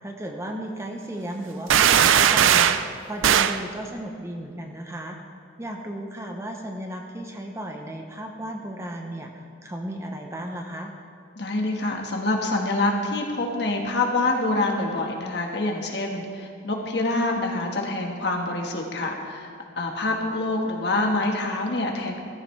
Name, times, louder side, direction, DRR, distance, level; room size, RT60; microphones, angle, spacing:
voice 1, 0.0-2.7 3.1-5.2 5.6-10.9, right 1 dB, 15° right, 2 dB, 0.8 m, -34 dB
sound 1, 1.7-2.9 3.2-3.6, right 9 dB, 90° right, 0.4 m, -18 dB
voice 2, 11.4-19.5 19.8-22.2, left 2 dB, 60° left, 1 dB, 1.4 m, -26 dB
14.5 x 14.0 x 3.3 m, 2.4 s
head